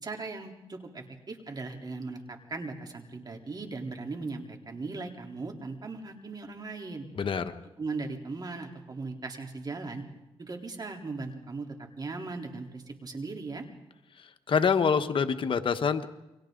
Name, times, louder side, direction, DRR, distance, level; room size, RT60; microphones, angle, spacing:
voice 1, 0.0-7.1 7.8-10.0 10.4-13.7, right 3 dB, 40° right, 3 dB, 3.8 m, -38 dB
voice 2, 7.1-7.5 14.2-16.1, left 6 dB, 60° left, 8 dB, 1.4 m, -26 dB
29.5 x 24.0 x 4.0 m, 0.98 s
cardioid pair, 70°, 10 cm